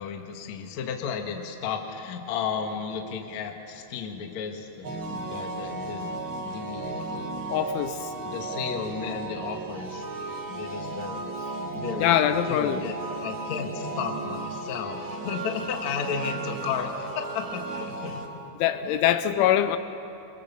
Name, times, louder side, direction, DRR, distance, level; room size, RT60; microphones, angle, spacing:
voice 1, 0.0-7.4 8.2-18.2 18.8-19.0 19.4-19.5, left 6 dB, 60° left, 3 dB, 1.9 m, -34 dB
sound 1, 4.8-18.3, right 3 dB, 80° right, 1.1 m, -35 dB
voice 2, 7.5-8.1 12.0-12.8 18.6-19.8, left 11 dB, 80° left, 10 dB, 3.1 m, -23 dB
27.0 x 23.5 x 7.1 m, 2.9 s
omnidirectional pair, 5.8 m